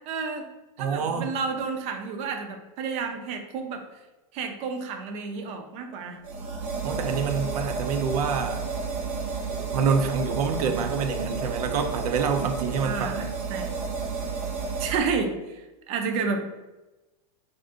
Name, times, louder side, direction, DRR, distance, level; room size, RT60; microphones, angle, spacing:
voice 1, 0.1-0.5 0.8-3.8 4.3-6.2 12.8-13.7 14.8-16.6, right 5 dB, 35° right, 4 dB, 0.5 m, -31 dB
voice 2, 0.8-1.3 6.8-8.6 9.6-13.3, right 5 dB, 80° right, 6 dB, 0.6 m, -27 dB
sound 1, 6.2-15.0, right 5 dB, 50° right, 0.9 m, -31 dB
2.5 x 2.5 x 3.6 m, 1.1 s
supercardioid pair, 140°, 19 cm